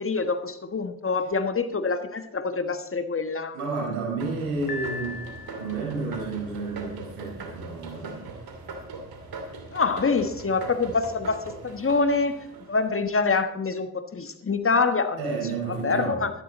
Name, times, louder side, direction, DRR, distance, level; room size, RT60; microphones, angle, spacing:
voice 1, 0.0-3.6 9.7-12.4 12.7-15.2 15.7-16.3, left 4 dB, 30° left, 9 dB, 1.3 m, -25 dB
voice 2, 3.5-5.2 5.6-8.2 15.2-16.2, right 4 dB, 85° right, -1 dB, 4.8 m, -31 dB
sound 1, 4.2-13.3, right 3 dB, 55° right, 2.7 m, -41 dB
Piano, 4.7-6.0, left 4 dB, 55° left, 2.0 m, -37 dB
13.0 x 12.5 x 4.1 m, 0.81 s
hypercardioid pair, 50°, 43 cm